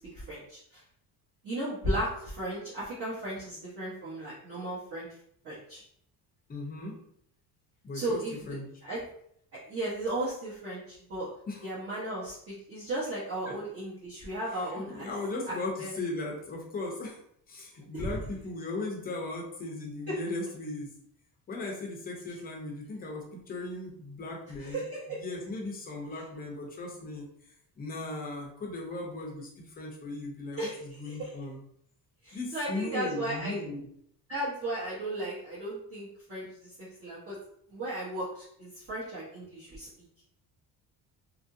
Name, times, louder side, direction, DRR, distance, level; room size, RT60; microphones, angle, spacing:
voice 1, 0.1-0.8 1.4-5.1 5.4-5.8 7.9-8.5 8.8-9.0 9.7-11.3 11.6-15.1 15.5-16.0 17.9-18.1 20.1-20.2 24.6-25.2 30.6-31.3 32.2-33.6 34.3-37.4 37.7-39.9, right 1 dB, 40° right, -10 dB, 1.0 m, -35 dB
voice 2, 6.5-7.0 7.8-8.2 8.5-8.6 11.5-11.7 13.5-13.6 14.5-17.2 17.5-20.9 21.5-24.8 25.2-31.6 32.3-33.9, left 2 dB, 25° left, -1 dB, 0.5 m, -37 dB
2.8 x 2.6 x 2.5 m, 0.68 s
cardioid pair, 170°, 37 cm